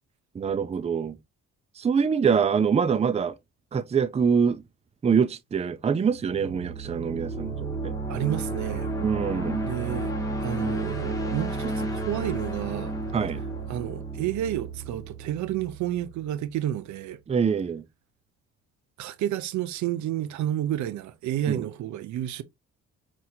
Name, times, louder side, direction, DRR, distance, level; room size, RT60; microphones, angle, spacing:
voice 1, 0.3-1.2 1.8-3.3 3.7-4.6 5.0-7.9 9.0-9.7 13.1-13.4 17.3-17.8 21.5-21.7, right 6 dB, 20° right, 0.4 m, -25 dB
sound 1, 6.0-16.7, right 2 dB, 10° left, 1.5 m, -32 dB
voice 2, 8.1-8.9 9.6-10.1 10.4-13.0 13.7-17.2 19.0-22.4, right 12 dB, 70° right, 0.5 m, -30 dB
5.6 x 2.6 x 2.7 m
cardioid pair, 90°, 30 cm